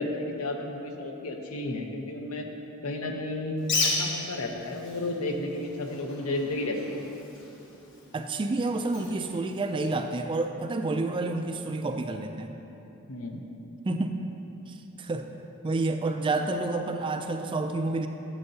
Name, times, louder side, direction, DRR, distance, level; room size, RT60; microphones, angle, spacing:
voice 1, 0.0-2.5 2.8-7.0 13.1-13.4, left 2 dB, 75° left, 3 dB, 0.8 m, -32 dB
Bird, 3.6-10.2, left 3 dB, 55° left, 1.2 m, -35 dB
voice 2, 8.1-12.6 13.8-14.2 14.7-15.3 15.6-18.1, right 2 dB, 20° right, 6 dB, 0.3 m, -29 dB
11.0 x 7.6 x 2.8 m, 2.9 s
head